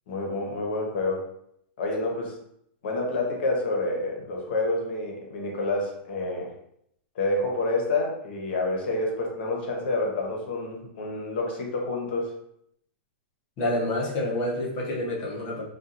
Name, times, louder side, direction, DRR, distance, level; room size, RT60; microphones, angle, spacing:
voice 1, 0.1-1.2 1.8-2.3 2.8-6.5 7.1-12.3, left 2 dB, 65° left, 0 dB, 0.9 m, -28 dB
voice 2, 13.6-15.6, left 1 dB, 35° left, -4 dB, 0.8 m, -28 dB
2.8 x 2.4 x 2.5 m, 0.73 s
supercardioid pair, 160°, 6 cm